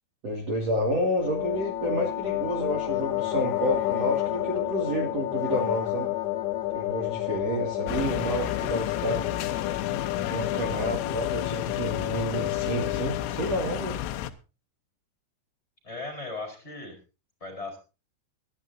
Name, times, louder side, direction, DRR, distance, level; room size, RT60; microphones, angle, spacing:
voice 1, 0.2-6.1 6.7-9.4 10.1-14.0, equal, 40° right, 0 dB, 2.9 m, -30 dB
sound 1, 1.2-13.4, left 15 dB, 65° left, 3.2 m, -30 dB
sound 2, 7.9-14.3, left 12 dB, 90° left, 3.6 m, -33 dB
voice 2, 15.8-16.9 17.4-17.8, left 3 dB, 15° left, 4 dB, 4.3 m, -37 dB
23.0 x 12.0 x 2.8 m, 0.31 s
omnidirectional pair, 5.9 m